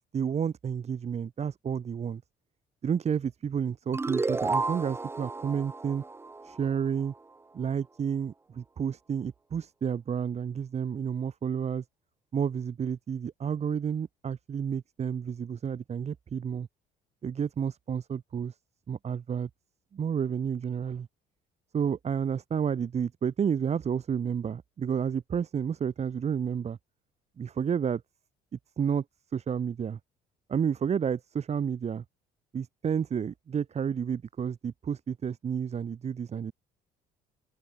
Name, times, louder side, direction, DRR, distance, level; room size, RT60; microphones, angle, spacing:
voice 1, 0.0-2.2 2.8-6.0 6.4-7.1 7.5-11.8 12.3-16.7 17.2-18.5 18.9-19.5 19.9-21.1 21.7-26.8 27.4-28.0 28.8-29.0 29.3-30.0 30.5-32.0 32.5-36.5, right 7 dB, 40° right, 2.9 m, -30 dB
sound 1, 3.9-7.2, right 3 dB, 15° right, 0.8 m, -32 dB
cardioid pair, 110°, 17 cm